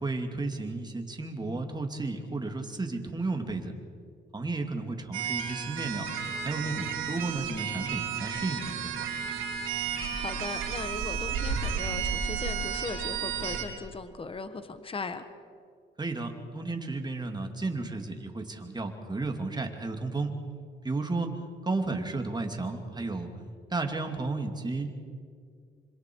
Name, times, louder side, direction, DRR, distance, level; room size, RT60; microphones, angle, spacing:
voice 1, 0.0-3.7 4.3-6.1 6.4-9.1 16.0-20.3 20.8-21.3 21.6-23.3 23.7-24.9, right 3 dB, 20° right, 4 dB, 2.6 m, -33 dB
sound 1, 5.1-13.6, right 7 dB, 90° right, 3.7 m, -32 dB
voice 2, 10.1-15.2, left 4 dB, 25° left, 10 dB, 1.3 m, -38 dB
26.5 x 26.0 x 4.7 m, 2.2 s
cardioid pair, 90°, 20 cm